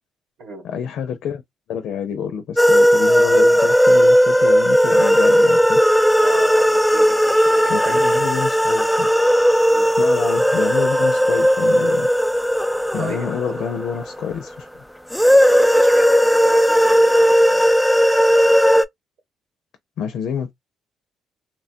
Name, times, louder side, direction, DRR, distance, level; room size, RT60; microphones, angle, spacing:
voice 1, 0.6-1.4 1.7-5.8 7.7-9.1 10.0-12.1 12.9-14.7 20.0-20.5, left 7 dB, 75° left, 0.5 m, -27 dB
sound 1, 2.6-14.3 15.1-18.8, equal, 5° left, 0.3 m, -16 dB
voice 2, 6.2-8.1 9.7-9.9 13.0-13.7 15.5-17.7, right 3 dB, 70° right, 0.7 m, -34 dB
3.0 x 2.2 x 2.6 m
cardioid pair, 80°, 0 cm